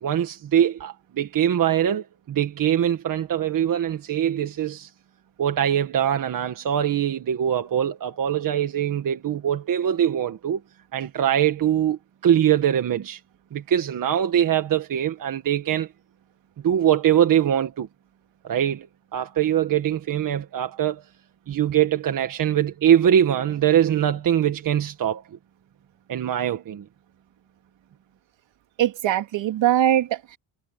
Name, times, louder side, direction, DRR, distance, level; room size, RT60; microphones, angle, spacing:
voice 1, 0.0-4.9 5.4-10.6 10.9-13.2 13.5-15.9 16.6-17.9 18.4-21.0 21.5-25.2 26.1-26.8, right 10 dB, 40° right, 1.5 m, -22 dB
voice 2, 28.8-30.4, right 12 dB, 60° right, 3.1 m, -21 dB
cardioid pair, 180°, 49 cm